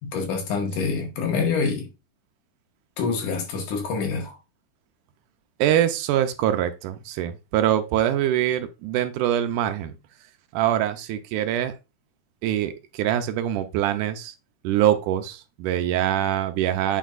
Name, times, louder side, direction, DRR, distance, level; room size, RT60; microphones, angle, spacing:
voice 1, 0.0-1.9 3.0-4.4, left 5 dB, 75° left, 3.0 m, -26 dB
voice 2, 5.6-10.0 10.5-11.7 12.4-14.3 14.6-17.0, right 11 dB, 80° right, 2.1 m, -24 dB
9.3 x 4.4 x 2.5 m
omnidirectional pair, 3.7 m